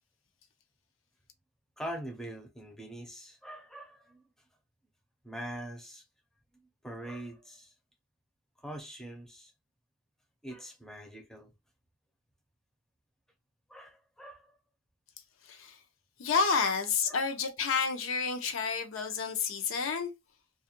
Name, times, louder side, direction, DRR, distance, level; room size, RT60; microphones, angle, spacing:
voice 1, 1.8-4.2 5.2-6.0 6.8-7.7 8.6-9.5 10.4-11.5 13.7-14.6 16.6-16.7 17.1-17.2, right 1 dB, 5° left, 0.4 m, -43 dB
voice 2, 15.5-15.8 16.2-20.1, left 5 dB, 85° left, 0.5 m, -30 dB
2.3 x 2.1 x 2.8 m
head